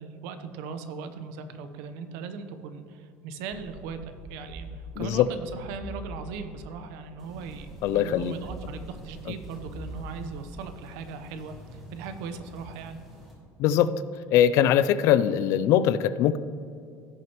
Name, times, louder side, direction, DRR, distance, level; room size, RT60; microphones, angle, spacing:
voice 1, 0.0-13.0, right 5 dB, 80° right, 9 dB, 0.8 m, -39 dB
sound 1, 3.5-6.8 7.4-10.8, right 1 dB, 40° right, 0.9 m, -43 dB
voice 2, 5.0-5.3 7.8-8.3 13.6-13.9 14.3-16.4, left 10 dB, 55° left, 15 dB, 0.4 m, -21 dB
sound 2, 7.2-13.3, equal, 5° right, 2.4 m, -48 dB
16.5 x 6.3 x 3.0 m, 2.5 s
cardioid pair, 165°, 6 cm